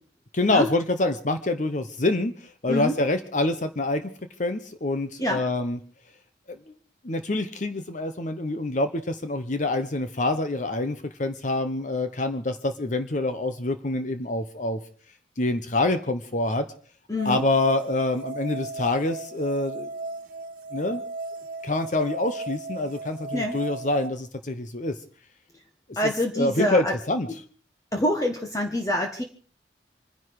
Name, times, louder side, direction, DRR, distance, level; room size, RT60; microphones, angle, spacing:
voice 1, 0.3-4.0 4.4-5.8 7.0-14.8 15.4-16.6 17.2-19.9 20.7-21.0 21.6-24.9 26.4-27.3, left 2 dB, 45° left, 9 dB, 0.9 m, -26 dB
voice 2, 17.1-17.4 23.3-23.6 26.0-26.9 27.9-29.2, left 1 dB, 20° left, 3 dB, 1.4 m, -26 dB
sound 1, 17.2-24.1, right 3 dB, 50° right, 1.6 m, -36 dB
26.0 x 10.5 x 4.8 m, 0.42 s
head